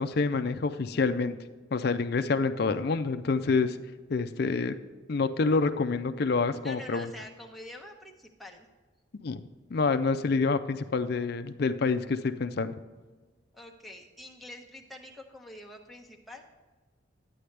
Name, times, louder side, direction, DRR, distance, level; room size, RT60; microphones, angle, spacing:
voice 1, 0.0-1.4 1.7-3.8 4.1-4.8 5.1-7.1 9.2-9.4 9.7-12.7, left 4 dB, 55° left, 9 dB, 0.4 m, -27 dB
voice 2, 6.6-8.7 13.5-16.5, left 1 dB, ahead, -1 dB, 1.0 m, -46 dB
11.5 x 9.2 x 3.3 m, 1.3 s
head